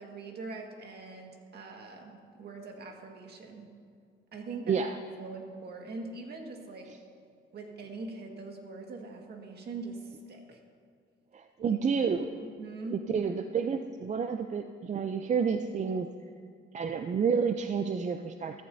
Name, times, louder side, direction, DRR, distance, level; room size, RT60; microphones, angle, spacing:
voice 1, 0.0-3.7 4.3-4.9 5.2-6.9 7.5-10.6 11.6-11.8 12.6-13.0, right 3 dB, 55° right, 2 dB, 1.8 m, -42 dB
voice 2, 4.7-5.0 6.9-7.0 11.3-12.4 12.9-16.1 16.7-18.6, right 6 dB, 35° right, 7 dB, 0.5 m, -30 dB
14.5 x 14.0 x 2.7 m, 2.2 s
cardioid pair, 90°, 20 cm